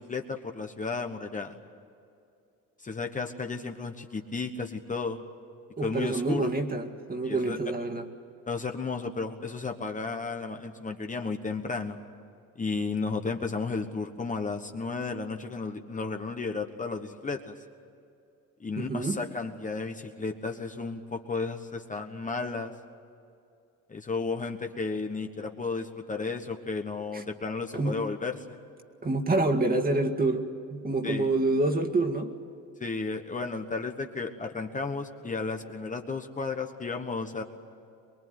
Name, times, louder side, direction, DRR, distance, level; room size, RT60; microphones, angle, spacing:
voice 1, 0.0-1.6 2.8-5.2 5.8-6.5 7.2-7.6 8.5-12.0 12.6-17.5 18.6-22.7 23.9-28.6 31.0-31.3 32.8-37.4, left 4 dB, 25° left, 4 dB, 1.2 m, -33 dB
voice 2, 5.8-8.1 18.8-19.2 27.1-27.2 27.7-28.0 29.0-32.3, right 2 dB, 25° right, 6 dB, 2.1 m, -27 dB
23.5 x 21.5 x 9.4 m, 2.5 s
cardioid pair, 125°, 32 cm